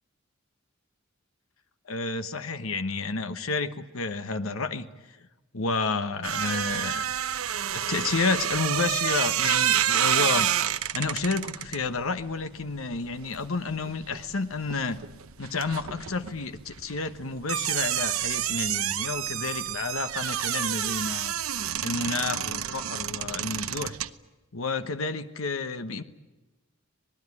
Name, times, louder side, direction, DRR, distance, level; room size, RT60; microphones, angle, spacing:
voice 1, 1.9-4.9 5.5-7.0 7.7-10.5 10.9-15.0 15.4-21.3 21.8-24.0 24.5-26.0, left 4 dB, 75° left, 10 dB, 1.2 m, -30 dB
sound 1, 6.2-14.3 14.6-24.1, right 10 dB, 90° right, 0.9 m, -29 dB
26.0 x 19.5 x 9.8 m, 1.1 s
head